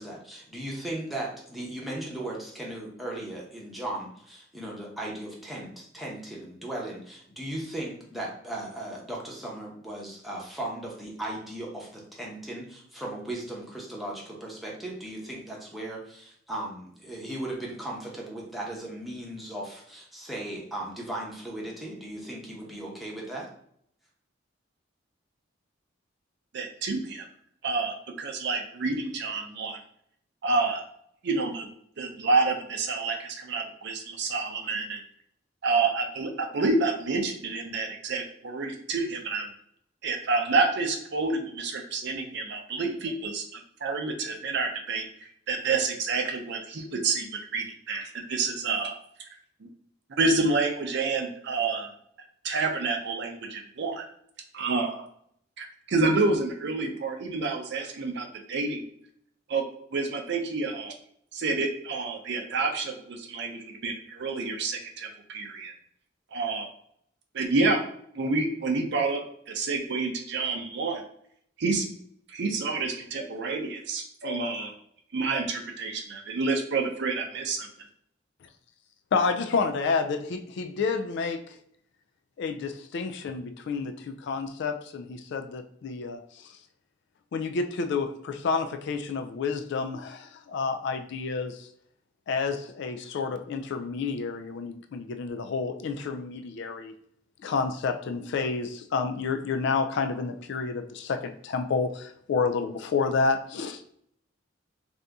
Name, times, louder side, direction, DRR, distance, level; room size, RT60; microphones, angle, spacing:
voice 1, 0.0-23.5, right 1 dB, ahead, -4 dB, 0.8 m, -37 dB
voice 2, 26.5-27.2 27.6-29.8 30.4-30.8 31.2-31.7 32.0-35.0 35.6-39.5 40.0-45.1 45.5-48.9 50.2-51.9 52.4-54.1 54.5-55.1 55.6-58.8 59.5-59.6 59.9-60.9 61.3-65.7 66.3-66.7 67.3-67.8 68.1-69.2 69.5-71.0 71.6-71.9 72.3-74.7 75.1-77.7, right 3 dB, 65° right, 4 dB, 0.6 m, -28 dB
voice 3, 79.1-81.4 82.4-86.2 87.3-91.7 92.3-96.9 97.4-103.9, left 4 dB, 65° left, 8 dB, 0.3 m, -29 dB
2.7 x 2.6 x 3.4 m, 0.66 s
head